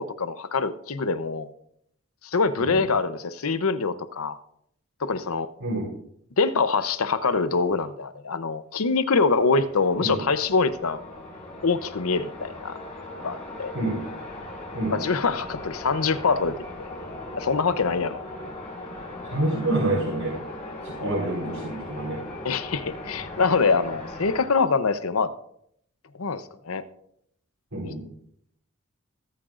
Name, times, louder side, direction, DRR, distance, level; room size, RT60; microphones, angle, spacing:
voice 1, 0.0-1.5 2.2-4.4 5.0-5.5 6.4-11.0 11.6-12.7 13.2-13.7 14.9-16.9 17.4-18.2 21.0-21.2 22.4-25.3 26.2-26.8 27.8-27.9, left 4 dB, 85° left, 12 dB, 0.8 m, -24 dB
sound 1, 8.9-24.5, left 2 dB, 30° left, 4.9 m, -39 dB
voice 2, 19.3-20.4 20.8-22.2 27.7-28.0, right 2 dB, 90° right, -6 dB, 4.1 m, -27 dB
22.5 x 8.9 x 2.5 m, 0.70 s
head